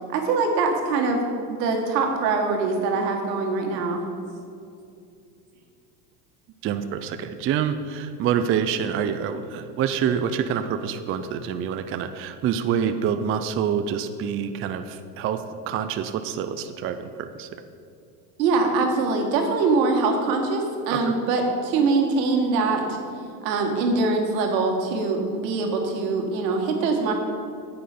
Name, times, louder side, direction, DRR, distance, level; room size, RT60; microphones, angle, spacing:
voice 1, 0.1-4.0 18.4-23.0 23.4-27.1, right 3 dB, 80° right, 2 dB, 1.9 m, -23 dB
voice 2, 6.6-17.5 20.9-21.1, right 8 dB, 30° right, 9 dB, 0.4 m, -27 dB
9.8 x 7.8 x 5.1 m, 2.5 s
supercardioid pair, 105°, 49 cm